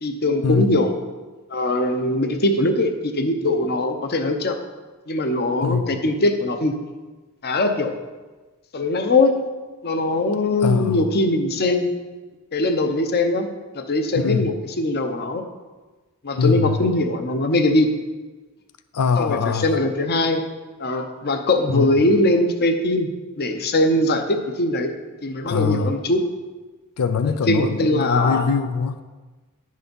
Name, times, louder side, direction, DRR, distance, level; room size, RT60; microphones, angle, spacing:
voice 1, 0.0-0.9 1.5-4.6 5.1-6.7 7.4-7.9 8.7-9.3 9.8-11.9 12.5-15.4 16.2-17.9 19.2-20.4 20.8-23.1 23.4-24.9 25.2-26.2 27.5-28.5, left 2 dB, 45° left, 7 dB, 0.8 m, -21 dB
voice 2, 10.6-11.0 14.1-14.5 16.3-16.8 18.9-19.7 21.7-21.9 25.5-25.9 27.0-29.0, left 5 dB, 90° left, 11 dB, 0.5 m, -22 dB
10.5 x 6.6 x 5.3 m, 1.3 s
head